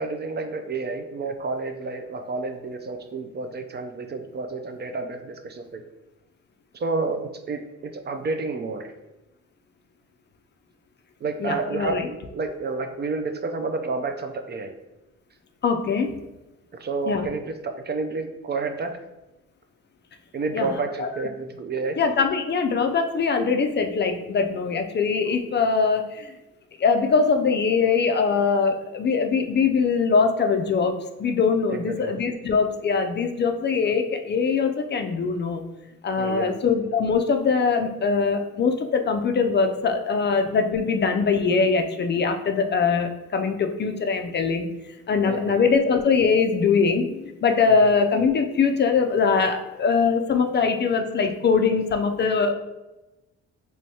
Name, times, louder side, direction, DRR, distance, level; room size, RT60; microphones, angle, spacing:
voice 1, 0.0-5.8 6.7-8.9 11.2-14.7 16.8-19.0 20.3-22.0 31.7-32.1 36.2-36.6 45.2-45.6 47.7-47.8, right 3 dB, 35° right, 6 dB, 0.4 m, -30 dB
voice 2, 11.4-12.1 15.6-16.1 17.1-17.2 20.5-21.1 22.0-26.3 26.8-35.6 36.0-44.7 45.1-52.5, left 5 dB, 35° left, 5 dB, 0.4 m, -22 dB
3.3 x 3.1 x 2.7 m, 1.0 s
cardioid pair, 90°, 30 cm